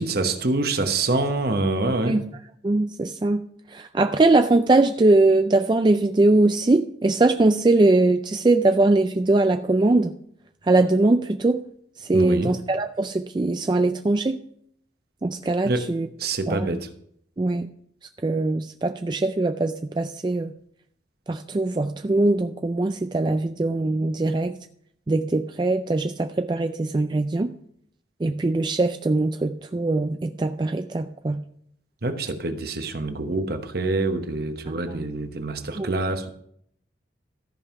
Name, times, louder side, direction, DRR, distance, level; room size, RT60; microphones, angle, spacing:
voice 1, 0.0-2.2 12.1-12.5 15.6-15.9 16.2-16.9 32.0-36.3, right 2 dB, 55° right, 1.0 m, -26 dB
voice 2, 2.6-3.4 3.7-10.1 10.6-11.6 12.0-14.4 15.2-16.1 16.5-16.7 17.4-17.7 18.2-20.5 21.3-24.5 25.1-27.5 28.2-31.4 34.9-35.0 35.8-35.9, right 2 dB, 25° right, 0.3 m, -21 dB
14.0 x 5.5 x 5.8 m
head